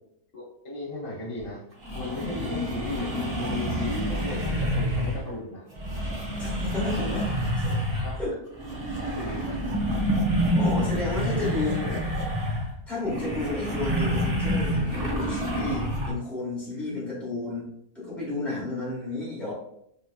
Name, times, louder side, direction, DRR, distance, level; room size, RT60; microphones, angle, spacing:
voice 1, 0.3-1.6 1.9-5.7 7.0-7.2 7.9-8.2 9.0-9.6 11.3-12.0, left 2 dB, 65° left, -5 dB, 1.3 m, -35 dB
sound 1, 1.4-1.5 1.8-5.3 5.7-8.3 8.5-16.1, equal, 40° right, 0.5 m, -28 dB
voice 2, 6.4-7.2 7.6-7.7 8.2-8.4 10.5-11.7 12.9-17.7 17.9-19.5, left 2 dB, ahead, -7 dB, 1.2 m, -32 dB
3.5 x 2.9 x 2.3 m, 0.75 s
omnidirectional pair, 1.5 m